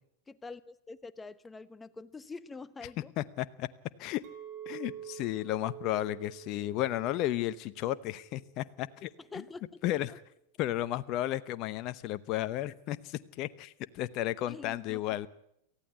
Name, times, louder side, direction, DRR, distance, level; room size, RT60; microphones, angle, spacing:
voice 1, 0.3-3.1 9.2-9.8 14.5-15.3, left 3 dB, 15° left, 14 dB, 1.0 m, -46 dB
voice 2, 3.2-3.7 4.0-4.2 4.7-9.1 9.8-10.1 10.6-15.3, left 14 dB, 45° left, 14 dB, 0.8 m, -33 dB
Chink clink, 4.2-8.6 8.9-9.4, right 9 dB, 55° right, 3.2 m, -47 dB
18.5 x 14.5 x 9.5 m, 0.75 s
hypercardioid pair, 100°, 0 cm